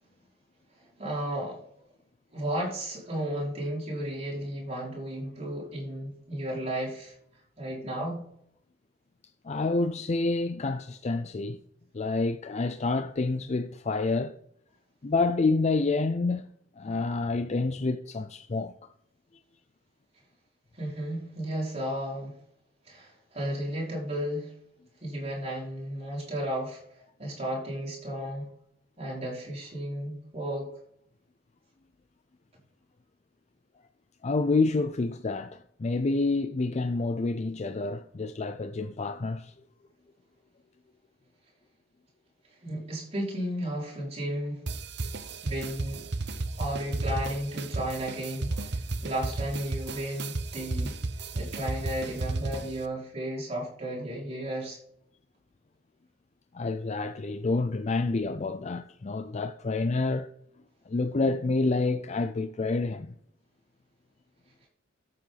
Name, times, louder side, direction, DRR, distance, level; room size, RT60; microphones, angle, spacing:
voice 1, 0.7-1.9 2.3-7.1 7.6-8.2 20.7-22.3 22.8-24.5 25.0-28.5 29.0-30.8 42.5-44.6 45.4-46.1 46.6-51.0 51.3-54.8, right 1 dB, 30° right, 4.9 m, -34 dB
voice 2, 9.4-11.6 11.9-14.4 15.0-16.5 16.8-18.9 34.2-39.5 56.5-60.3 60.9-63.1, left 3 dB, 35° left, 0.4 m, -28 dB
sound 1, 44.7-52.8, right 2 dB, 60° right, 0.9 m, -33 dB
13.0 x 7.7 x 4.0 m
head